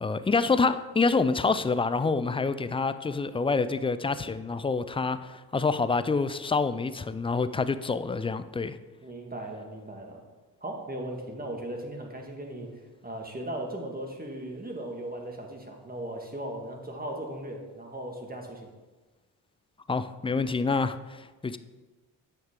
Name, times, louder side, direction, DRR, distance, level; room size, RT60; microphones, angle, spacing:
voice 1, 0.0-8.8 19.9-21.6, left 4 dB, 15° left, 13 dB, 0.4 m, -27 dB
voice 2, 9.0-10.2 10.6-18.7, right 1 dB, 20° right, 1 dB, 1.9 m, -38 dB
8.9 x 6.4 x 3.7 m, 1.2 s
hypercardioid pair, 45°, 43 cm